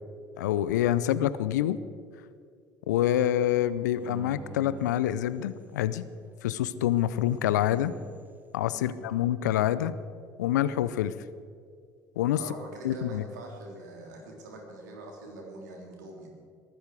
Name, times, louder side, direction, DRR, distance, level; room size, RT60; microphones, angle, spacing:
voice 1, 0.4-1.8 2.9-6.0 6.4-7.9 8.5-9.9 10.4-11.1 12.2-12.4 12.8-13.2, left 12 dB, 75° left, 16 dB, 0.6 m, -26 dB
sound 1, 4.0-5.9 6.9-8.4, right 4 dB, 20° right, 1.6 m, -48 dB
voice 2, 12.3-16.3, right 2 dB, 75° right, 1 dB, 3.3 m, -43 dB
22.5 x 13.0 x 4.8 m, 2.3 s
figure-of-eight pair, 60°, 10 cm